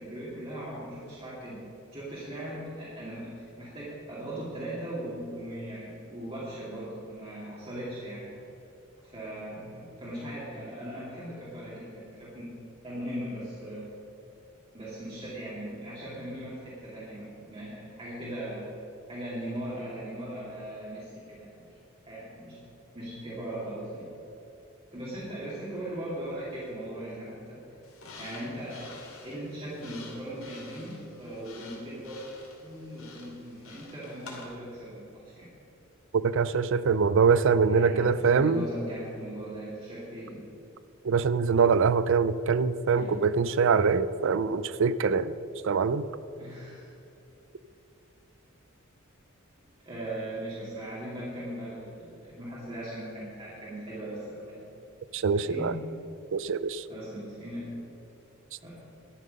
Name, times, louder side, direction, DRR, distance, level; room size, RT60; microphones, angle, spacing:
voice 1, 0.0-1.6 1.9-8.3 9.0-12.5 12.8-13.9 14.7-18.7 19.1-21.8 22.1-22.6 22.9-24.1 24.9-27.6 28.2-28.9 29.2-32.2 32.6-35.5 37.7-40.4 42.9-43.2 46.4-46.9 49.8-54.6 55.3-55.8 56.9-57.7 58.6-58.8, right 1 dB, 25° right, -9 dB, 2.8 m, -39 dB
sound 1, 27.8-34.4, left 3 dB, 80° left, 2.5 m, -49 dB
voice 2, 36.2-38.6 41.0-45.3 45.6-46.0 55.1-55.7 56.3-56.8, right 5 dB, 65° right, 16 dB, 0.5 m, -24 dB
12.5 x 10.0 x 5.4 m, 2.9 s
head